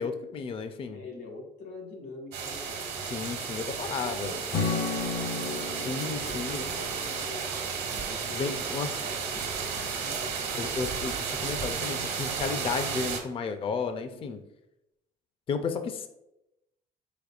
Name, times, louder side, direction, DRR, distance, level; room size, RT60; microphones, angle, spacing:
voice 1, 0.0-1.0 3.1-4.3 5.9-6.6 8.3-8.9 10.6-11.1 11.4-14.4 15.5-16.1, left 5 dB, 35° left, 8 dB, 0.4 m, -33 dB
voice 2, 0.9-7.5 7.8-10.9 13.7-14.3, left 3 dB, 75° left, 1 dB, 1.4 m, -45 dB
sound 1, 2.3-13.2, right 6 dB, 70° right, 1.2 m, -33 dB
Strum, 4.5-8.7, left 4 dB, 55° left, 0.7 m, -35 dB
sound 2, 6.3-13.1, right 5 dB, 40° right, 0.5 m, -48 dB
5.2 x 4.1 x 2.4 m, 0.88 s
cardioid pair, 110°, 17 cm